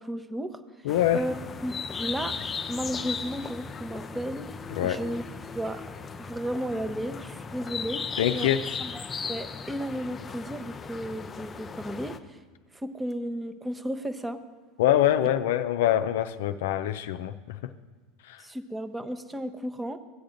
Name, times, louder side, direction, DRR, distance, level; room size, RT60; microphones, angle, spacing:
voice 1, 0.0-2.4 2.7-4.5 4.8-5.2 5.5-5.8 6.2-8.5 8.8-12.4 12.7-14.4 18.4-20.0, equal, 15° right, 10 dB, 0.8 m, -34 dB
voice 2, 0.8-1.2 4.7-5.0 8.2-8.7 14.8-17.6 18.3-18.4, left 11 dB, 70° left, 9 dB, 0.4 m, -24 dB
sound 1, 0.9-12.2, left 5 dB, 25° left, 0.6 m, -37 dB
16.0 x 8.9 x 2.6 m, 1.4 s
hypercardioid pair, 85°, 0 cm